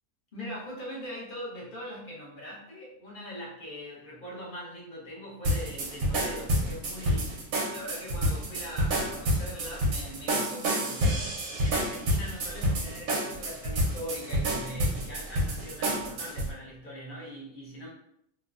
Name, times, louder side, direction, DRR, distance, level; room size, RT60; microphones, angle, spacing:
voice 1, 0.3-7.3 7.7-11.3 11.6-17.9, equal, 45° left, -5 dB, 0.8 m, -41 dB
sound 1, 5.4-16.5, equal, 80° right, 1.1 m, -29 dB
3.0 x 2.2 x 2.4 m, 0.75 s
omnidirectional pair, 1.5 m